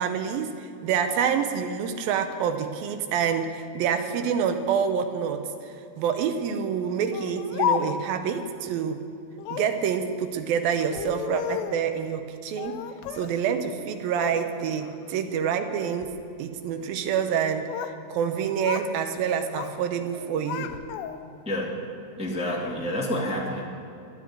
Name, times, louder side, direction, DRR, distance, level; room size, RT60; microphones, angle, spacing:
voice 1, 0.0-9.0 9.5-12.8 13.2-16.1 16.4-17.7 18.1-20.7, right 7 dB, 80° right, 8 dB, 2.6 m, -27 dB
Speech, 7.1-8.2 9.4-9.8 10.8-11.9 12.6-13.4 13.7-14.4 14.8-15.2 15.9-16.2 17.3-18.0 18.3-18.9 19.2-19.8 20.1-21.4, left 9 dB, 75° left, 1.9 m, -33 dB
voice 2, 21.4-21.8 22.2-23.6, left 1 dB, 5° right, -3 dB, 1.2 m, -28 dB
13.0 x 10.0 x 8.9 m, 2.6 s
omnidirectional pair, 4.2 m